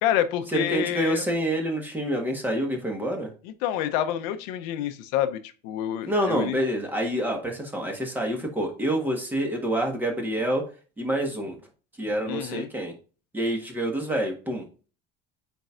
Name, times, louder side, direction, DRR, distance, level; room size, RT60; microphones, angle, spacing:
voice 1, 0.0-1.3 3.4-6.6 12.3-12.7, left 11 dB, 75° left, 10 dB, 0.8 m, -28 dB
voice 2, 0.5-3.3 6.1-10.6 11.0-11.6 12.0-12.9 13.3-14.7, right 1 dB, 10° right, 1 dB, 1.6 m, -27 dB
9.1 x 4.6 x 2.5 m, 0.36 s
cardioid pair, 160°, 21 cm